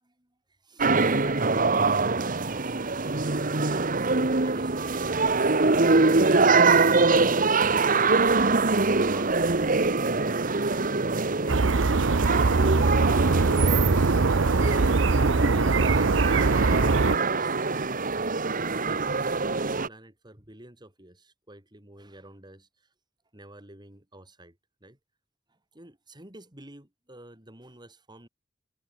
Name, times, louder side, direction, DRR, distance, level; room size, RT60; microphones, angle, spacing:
voice 1, 0.0-0.3 0.6-2.0 2.4-5.2 9.0-9.3 15.2-16.6 16.9-18.1 18.6-22.7 23.3-25.0 25.7-28.3, right 1 dB, 25° right, 5.3 m, -49 dB
sound 1, 0.8-19.9, right 3 dB, 45° right, 1.4 m, -24 dB
Wind instrument woodwind instrument, 11.4-16.8, left 5 dB, 35° left, 4.0 m, -50 dB
sound 2, 11.5-17.2, right 3 dB, 85° right, 0.8 m, -22 dB
head